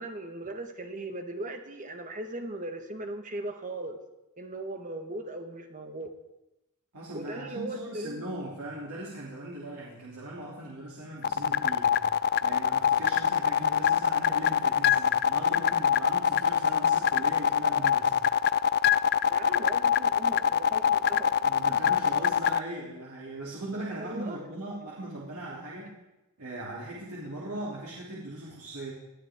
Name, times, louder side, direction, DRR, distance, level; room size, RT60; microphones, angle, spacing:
voice 1, 0.0-4.0 4.4-6.1 7.1-8.2 19.3-21.4 21.7-21.8 24.0-24.4, right 2 dB, 35° right, 6 dB, 1.5 m, -38 dB
voice 2, 6.9-12.0 12.4-18.1 21.4-26.0 26.4-28.9, right 1 dB, 80° right, -6 dB, 3.0 m, -39 dB
sound 1, 11.2-22.6, left 8 dB, 45° left, 0.4 m, -24 dB
20.5 x 12.5 x 3.7 m, 0.96 s
head